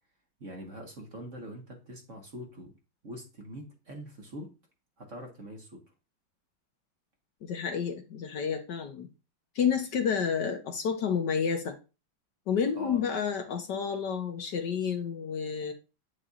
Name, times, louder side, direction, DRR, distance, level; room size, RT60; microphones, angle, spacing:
voice 1, 0.4-2.7 3.0-4.5 5.0-5.8 12.8-13.1, equal, 40° right, 1 dB, 1.5 m, -43 dB
voice 2, 7.4-9.1 9.5-11.7 12.5-15.7, left 7 dB, 60° left, 5 dB, 1.4 m, -30 dB
8.9 x 6.8 x 2.5 m, 0.30 s
omnidirectional pair, 2.2 m